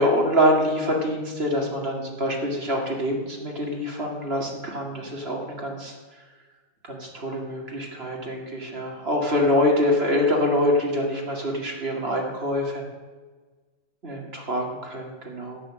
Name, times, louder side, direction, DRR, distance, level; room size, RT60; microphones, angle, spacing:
voice 1, 0.0-5.9 6.9-12.8 14.0-15.6, left 1 dB, 30° right, 0 dB, 2.4 m, -25 dB
11.0 x 8.0 x 7.6 m, 1.4 s
omnidirectional pair, 2.2 m